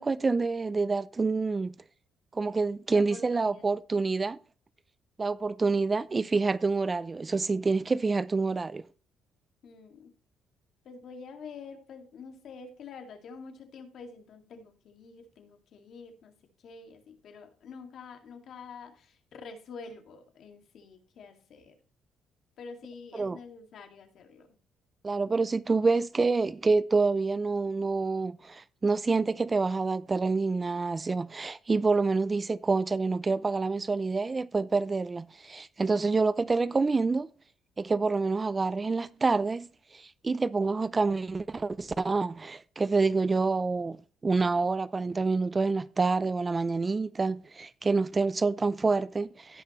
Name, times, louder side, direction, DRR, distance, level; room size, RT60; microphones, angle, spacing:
voice 1, 0.0-1.7 2.3-4.4 5.2-8.8 23.2-23.4 25.0-37.3 37.8-39.7 39.9-44.0 44.2-49.6, right 4 dB, 25° right, 0.4 m, -27 dB
voice 2, 2.9-3.6 9.6-10.1 10.8-21.8 22.6-24.6, left 5 dB, 60° left, 2.2 m, -47 dB
17.0 x 5.9 x 3.1 m
cardioid pair, 115°, 0 cm